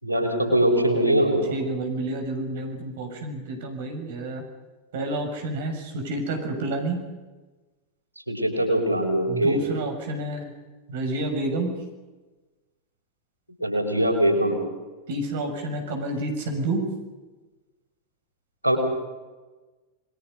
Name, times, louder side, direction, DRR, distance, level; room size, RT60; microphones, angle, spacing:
voice 1, 0.0-1.5 8.3-9.6 13.6-14.6 18.6-18.8, right 1 dB, 90° left, 2 dB, 6.0 m, -22 dB
voice 2, 1.5-4.4 4.9-7.0 9.3-10.5 10.9-11.7 15.1-16.9, right 2 dB, 55° right, 4 dB, 6.6 m, -29 dB
28.0 x 22.0 x 5.5 m, 1.2 s
figure-of-eight pair, 90°, 0 cm